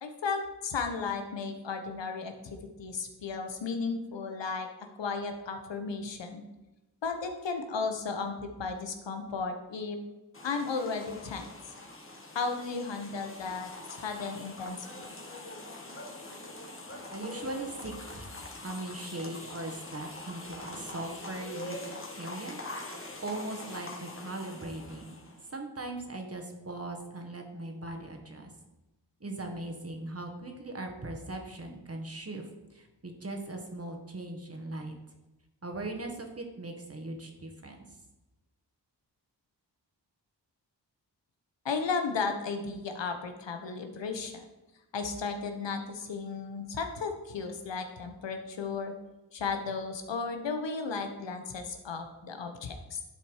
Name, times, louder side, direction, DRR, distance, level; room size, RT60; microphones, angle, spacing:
voice 1, 0.0-6.4 7.0-10.0 10.4-11.5 12.3-14.9 41.6-44.4 44.9-48.9 49.3-53.0, left 4 dB, 85° left, 5 dB, 1.1 m, -34 dB
sound 1, 10.3-25.5, left 2 dB, 30° left, 1.6 m, -44 dB
voice 2, 17.1-21.8 22.1-22.6 23.2-25.2 25.5-28.5 29.2-35.0 35.6-37.8, right 2 dB, 35° right, 3 dB, 1.7 m, -39 dB
11.0 x 4.5 x 4.8 m, 1.0 s
cardioid pair, 55°, 42 cm